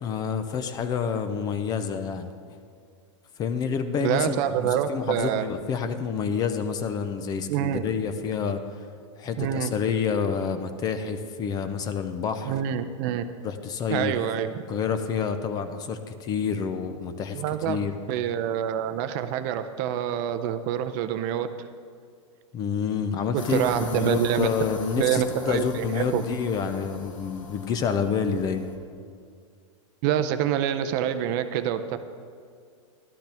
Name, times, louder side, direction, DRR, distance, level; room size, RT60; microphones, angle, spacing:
voice 1, 0.0-2.3 3.4-8.6 9.2-12.5 13.4-14.1 14.7-17.9 22.5-28.7, left 6 dB, 25° left, 9 dB, 0.5 m, -28 dB
voice 2, 4.0-5.4 7.5-7.8 9.4-9.7 12.4-13.2 13.9-14.5 17.3-21.5 23.3-24.5 25.0-26.2 30.0-32.0, right 10 dB, 40° right, 9 dB, 0.5 m, -26 dB
sound 1, 23.4-28.8, left 3 dB, 80° left, 1.5 m, -42 dB
12.0 x 11.5 x 3.5 m, 2.2 s
hypercardioid pair, 145°, 16 cm